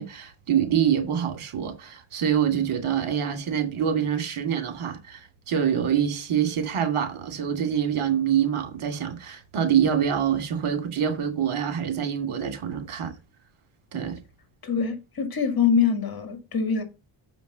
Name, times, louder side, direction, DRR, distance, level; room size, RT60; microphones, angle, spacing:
voice 1, 0.0-13.1 13.9-14.2, right 8 dB, 75° right, 2.5 m, -25 dB
voice 2, 14.6-16.8, left 6 dB, 45° left, 2.1 m, -24 dB
7.1 x 5.1 x 6.7 m
cardioid pair, 105°, 50 cm